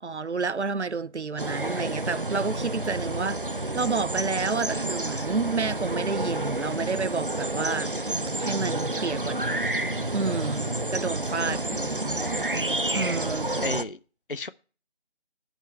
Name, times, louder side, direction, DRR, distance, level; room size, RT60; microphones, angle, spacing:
voice 1, 0.0-7.9 8.4-9.6 10.1-11.6 12.1-12.2 12.9-13.5, right 4 dB, 90° right, 0.7 m, -30 dB
sound 1, 1.4-13.8, right 1 dB, 50° right, 0.8 m, -29 dB
voice 2, 11.4-11.9 13.6-14.0 14.3-14.5, left 2 dB, 55° left, 0.5 m, -33 dB
9.3 x 6.2 x 8.6 m
figure-of-eight pair, 175°, 33 cm